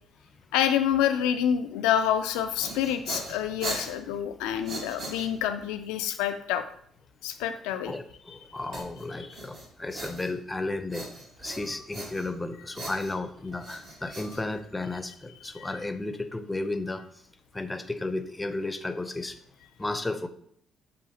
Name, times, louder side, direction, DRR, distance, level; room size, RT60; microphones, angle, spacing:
voice 1, 0.5-6.6 7.2-7.9 15.5-15.7, left 10 dB, 90° left, 8 dB, 0.4 m, -27 dB
sound 1, 2.3-5.7 8.7-10.6 10.9-12.4 12.7-15.0, right 2 dB, 70° right, 1.7 m, -39 dB
voice 2, 7.9-11.1 11.4-17.0 17.5-19.4 19.8-20.3, left 2 dB, 15° left, 9 dB, 0.5 m, -33 dB
7.2 x 2.5 x 2.8 m, 0.66 s
supercardioid pair, 70°, 0 cm